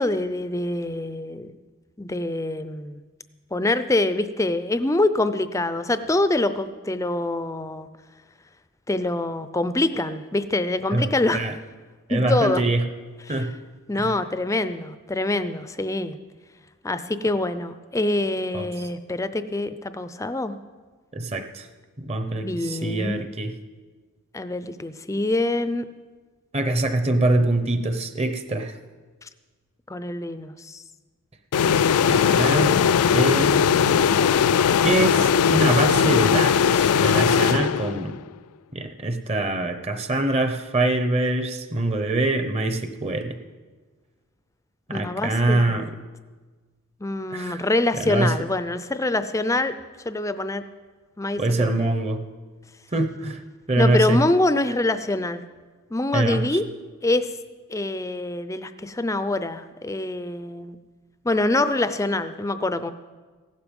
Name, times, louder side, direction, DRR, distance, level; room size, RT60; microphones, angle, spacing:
voice 1, 0.0-1.5 2.0-3.0 3.5-7.9 8.9-11.5 12.1-12.6 13.3-13.5 13.9-16.2 16.8-20.6 22.4-23.2 24.3-25.9 29.9-30.8 44.9-45.8 47.0-49.7 50.0-50.6 51.2-51.8 53.8-55.4 55.9-56.6 57.0-57.3 57.7-60.8 61.2-62.9, left 2 dB, 15° left, 12 dB, 0.5 m, -25 dB
voice 2, 10.9-11.5 12.1-12.9 13.3-13.5 13.9-14.1 18.5-18.7 21.1-21.7 22.0-23.5 26.5-28.7 32.0-32.8 33.1-34.0 34.8-38.2 38.7-43.4 44.9-45.9 47.3-47.6 48.0-48.4 51.4-52.2 52.9-53.4 53.7-54.2 56.1-56.6, right 2 dB, 30° right, 8 dB, 0.8 m, -24 dB
sound 1, 31.5-38.2, left 7 dB, 85° left, 0.4 m, -19 dB
15.5 x 12.0 x 5.3 m, 1.4 s
head